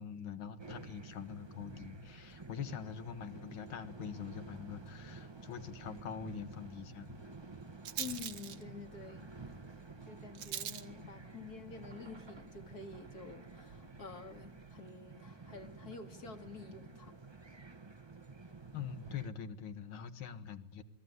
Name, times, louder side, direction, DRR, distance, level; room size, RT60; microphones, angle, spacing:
voice 1, 0.0-7.3 18.7-20.8, left 7 dB, 70° left, 2.2 m, -44 dB
sound 1, 0.6-19.3, right 3 dB, 30° right, 0.5 m, -51 dB
Rattle, 4.8-14.7, right 9 dB, 85° right, 2.1 m, -49 dB
voice 2, 8.0-9.6 10.1-17.2, left 5 dB, 45° left, 2.5 m, -49 dB
27.0 x 21.0 x 9.6 m
omnidirectional pair, 2.4 m